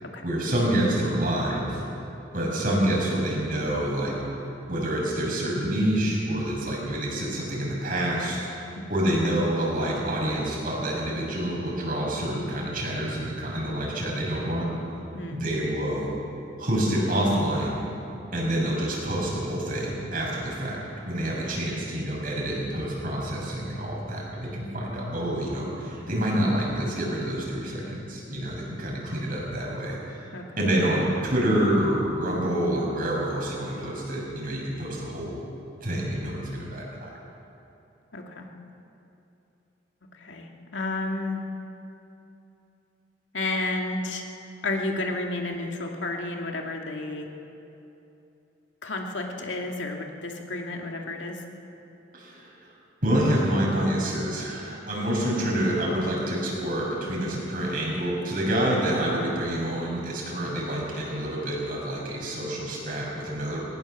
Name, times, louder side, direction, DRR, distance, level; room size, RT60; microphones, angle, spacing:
voice 1, 0.2-1.8 2.3-4.2 4.7-14.7 15.3-16.1 16.6-17.8 18.3-30.3 30.6-35.3 35.8-37.1 52.1-52.7 53.0-63.6, right 1 dB, 50° right, -3 dB, 6.4 m, -27 dB
voice 2, 15.1-15.7 30.3-30.5 38.1-38.5 40.1-41.4 43.3-44.3 44.6-47.3 48.8-51.4, left 2 dB, 90° left, 1 dB, 2.3 m, -31 dB
20.5 x 18.0 x 7.3 m, 2.9 s
head